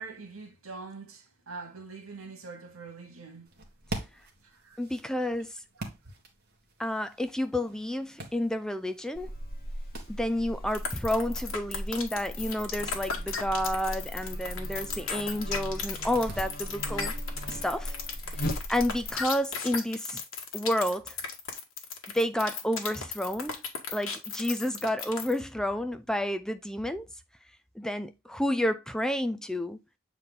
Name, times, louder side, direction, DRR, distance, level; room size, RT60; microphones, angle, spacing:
voice 1, 0.0-3.5 4.6-4.8 5.3-5.4, right 4 dB, 85° right, 2.2 m, -43 dB
sound 1, 3.4-19.9, right 1 dB, 50° right, 1.9 m, -47 dB
voice 2, 4.8-5.5 6.8-9.3 10.1-17.1 17.5-18.0 18.4-20.2 20.5-21.2 22.1-23.5 23.9-27.1 27.8-29.8, left 1 dB, 5° left, 0.4 m, -30 dB
Buzz, 9.1-19.1, equal, 45° left, 1.6 m, -38 dB
sound 2, 10.7-25.4, left 6 dB, 70° left, 1.7 m, -35 dB
8.1 x 4.3 x 3.6 m
head